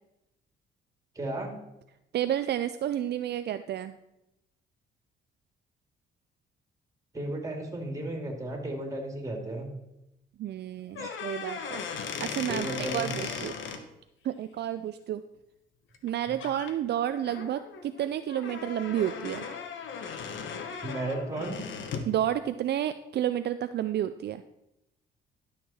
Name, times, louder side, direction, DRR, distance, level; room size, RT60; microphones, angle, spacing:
voice 1, 1.1-1.5 7.1-9.7 11.0-11.1 12.5-13.5 20.8-21.6, right 1 dB, 15° right, 2 dB, 2.6 m, -34 dB
voice 2, 2.1-4.0 10.4-11.8 12.2-13.5 14.2-15.2 16.0-19.5 22.0-24.4, right 11 dB, 60° right, 11 dB, 0.4 m, -30 dB
sound 1, 10.9-13.8 15.9-16.1 16.4-16.7 17.2-22.1, left 6 dB, 75° left, 1.1 m, -37 dB
11.5 x 6.6 x 4.3 m, 0.89 s
cardioid pair, 90°, 20 cm